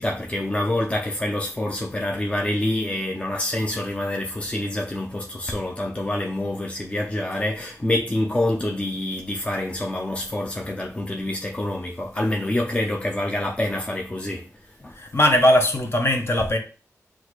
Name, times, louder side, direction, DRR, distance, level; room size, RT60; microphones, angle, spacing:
voice 1, 0.0-14.5 14.8-15.0 16.4-16.5, left 1 dB, 20° left, 0.6 m, -26 dB
voice 2, 15.0-16.6, left 1 dB, 45° left, 0.9 m, -19 dB
6.2 x 2.4 x 3.1 m
wide cardioid pair, 75°, 6 cm